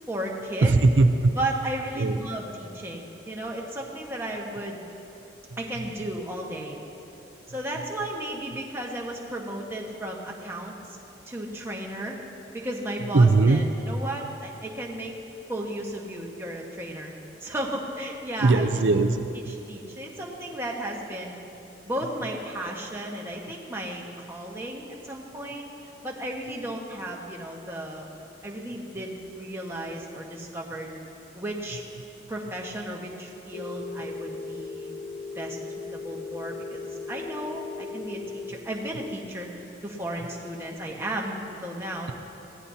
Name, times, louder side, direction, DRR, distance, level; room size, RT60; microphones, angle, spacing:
voice 1, 0.1-0.8 1.3-4.8 5.6-6.8 7.5-11.0 11.3-12.2 12.5-15.1 15.5-17.1 17.4-18.7 19.5-21.4 21.9-25.7 26.0-28.1 28.4-30.9 31.3-31.8 32.3-34.9 35.3-35.6 35.9-39.5 39.8-42.1, right 1 dB, 15° right, -2 dB, 1.4 m, -34 dB
voice 2, 0.6-1.3 2.0-2.2 13.1-13.6 18.4-19.6, right 3 dB, 75° right, 7 dB, 0.6 m, -20 dB
Telephone, 33.5-38.5, left 4 dB, 60° left, 0.9 m, -37 dB
22.0 x 16.5 x 2.8 m, 2.9 s
head